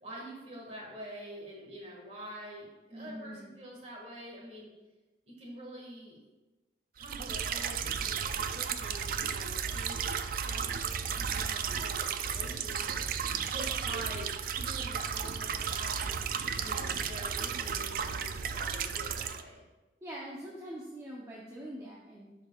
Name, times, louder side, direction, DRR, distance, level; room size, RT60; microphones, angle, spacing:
voice 1, 0.0-4.7 5.3-6.2 7.0-13.1 13.5-16.3 16.6-19.6, equal, 35° right, -2 dB, 1.8 m, -46 dB
voice 2, 2.9-3.5 20.0-22.3, equal, 15° right, -5 dB, 0.7 m, -44 dB
sound 1, 7.0-19.4, right 7 dB, 50° right, 0.3 m, -34 dB
10.0 x 4.6 x 2.4 m, 1.1 s
head